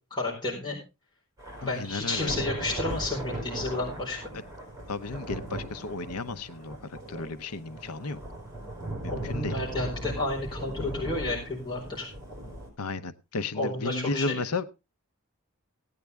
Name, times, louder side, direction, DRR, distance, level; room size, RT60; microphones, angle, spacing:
voice 1, 0.1-0.8 1.6-4.2 9.1-12.1 13.5-14.4, left 2 dB, 20° left, -4 dB, 4.3 m, -31 dB
Thunder / Rain, 1.4-12.7, right 1 dB, 15° right, 5.5 m, -38 dB
voice 2, 1.6-2.3 4.9-8.2 9.0-9.6 12.8-14.6, left 3 dB, 90° left, 12 dB, 0.8 m, -33 dB
16.5 x 9.6 x 3.4 m, 0.28 s
head